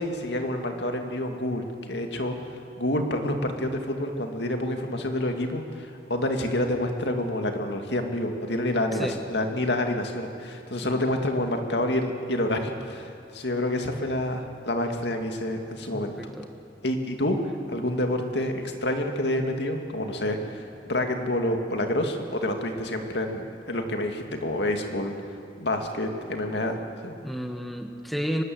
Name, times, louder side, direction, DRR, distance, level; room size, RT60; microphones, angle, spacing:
voice 1, 0.0-2.3 2.8-16.1 16.8-17.4 17.7-25.1 25.6-27.1, left 1 dB, 70° left, 4 dB, 2.3 m, -28 dB
voice 2, 15.9-16.5 27.2-28.4, equal, ahead, 5 dB, 1.2 m, -32 dB
24.5 x 19.5 x 8.0 m, 2.5 s
head